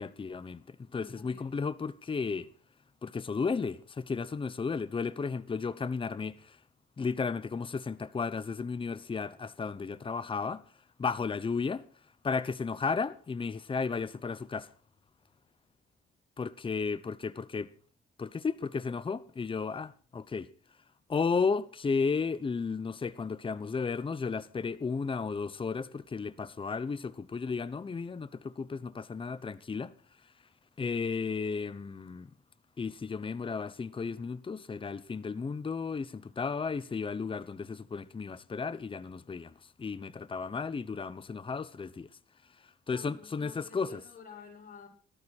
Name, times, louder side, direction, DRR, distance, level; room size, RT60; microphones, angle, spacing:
voice 1, 0.0-2.5 3.0-6.6 7.0-10.6 11.0-11.8 12.2-14.7 16.4-17.7 18.2-20.5 21.1-29.9 30.8-32.3 32.8-39.5 39.8-42.1 42.9-44.0, left 5 dB, 25° left, 0.9 m, -34 dB
voice 2, 0.9-1.6 2.0-2.2 42.9-44.9, left 5 dB, 45° left, 6.2 m, -51 dB
19.0 x 12.5 x 4.4 m
cardioid pair, 90°, 20 cm